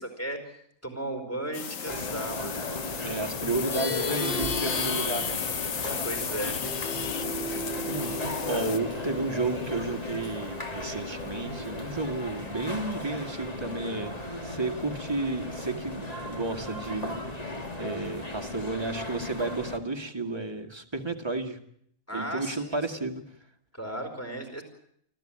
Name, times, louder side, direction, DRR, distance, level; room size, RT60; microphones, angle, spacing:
voice 1, 0.0-2.6 5.7-6.6 22.1-23.1 23.7-24.6, right 1 dB, 10° left, 5 dB, 4.9 m, -36 dB
sound 1, 1.5-8.8, left 7 dB, 75° left, 1.6 m, -34 dB
sound 2, 1.9-19.8, left 1 dB, 30° left, 2.3 m, -36 dB
voice 2, 3.0-5.4 7.8-8.2 8.5-17.5 17.8-21.6 22.1-23.2, right 2 dB, 20° right, 4 dB, 2.0 m, -32 dB
Plucked string instrument, 3.5-13.2, left 3 dB, 45° left, 1.4 m, -37 dB
25.0 x 15.0 x 8.9 m, 0.69 s
omnidirectional pair, 1.4 m